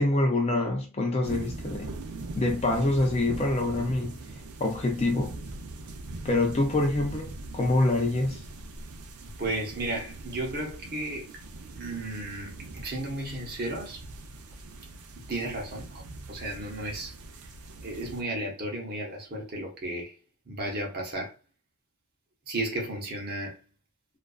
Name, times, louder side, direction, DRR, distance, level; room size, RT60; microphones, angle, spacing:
voice 1, 0.0-1.9 2.4-4.2 4.6-5.3 6.2-8.4, left 2 dB, 30° left, 0.4 m, -25 dB
sound 1, 1.2-18.2, right 2 dB, 90° right, 0.5 m, -41 dB
voice 2, 9.4-11.3 11.8-14.0 15.3-16.0 16.3-17.1 17.8-20.1 20.5-21.3 22.5-23.6, right 1 dB, 45° right, 0.7 m, -34 dB
2.4 x 2.2 x 2.3 m
head